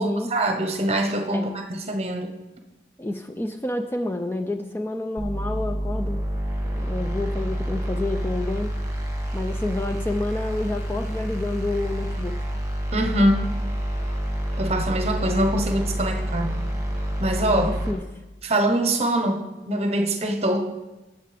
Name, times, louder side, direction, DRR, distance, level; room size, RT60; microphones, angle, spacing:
voice 1, 0.0-2.3 12.9-13.5 14.6-16.6 17.2-17.7 18.4-20.7, right 1 dB, 35° right, 5 dB, 1.0 m, -23 dB
voice 2, 3.0-6.2 6.7-8.7 9.3-12.4 17.5-18.0, left 2 dB, 10° left, 6 dB, 0.4 m, -29 dB
sound 1, 5.2-17.9, equal, 20° right, 1.8 m, -28 dB
18.5 x 7.6 x 3.4 m, 1.1 s
head